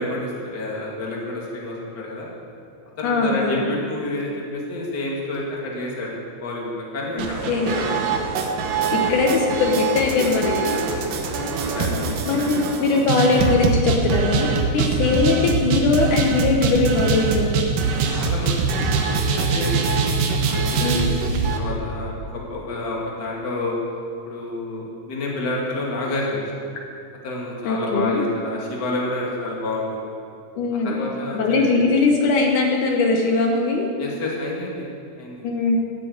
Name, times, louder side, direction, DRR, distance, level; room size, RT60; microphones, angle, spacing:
voice 1, 0.0-2.3 3.0-8.2 10.2-10.8 11.1-12.5 12.9-13.1 14.7-14.9 17.9-18.9 19.3-19.9 20.4-23.8 24.2-26.4 27.2-30.0 30.8-31.8 34.0-34.9 35.2-35.4, left 2 dB, 35° left, -3 dB, 2.5 m, -29 dB
voice 2, 3.0-3.6 7.2-7.7 9.1-10.8 11.8-12.0 12.3-17.5 20.8-21.1 27.6-28.2 30.6-31.0 31.3-33.9 35.4-35.8, left 3 dB, 75° left, 0 dB, 2.6 m, -20 dB
sound 1, 7.2-21.6, right 4 dB, 85° right, 2.7 m, -23 dB
14.5 x 7.8 x 7.9 m, 2.6 s
omnidirectional pair, 3.7 m